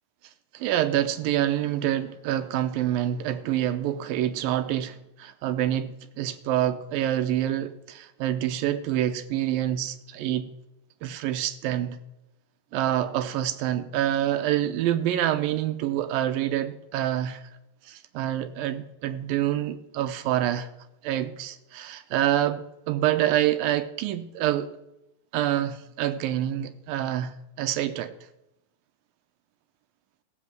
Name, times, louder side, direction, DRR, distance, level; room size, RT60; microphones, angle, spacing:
voice 1, 0.5-10.5 11.0-12.0 12.7-17.4 17.9-20.7 21.0-24.7 25.3-28.1, right 12 dB, 85° right, 2.4 m, -27 dB
15.5 x 7.9 x 7.7 m
omnidirectional pair, 4.1 m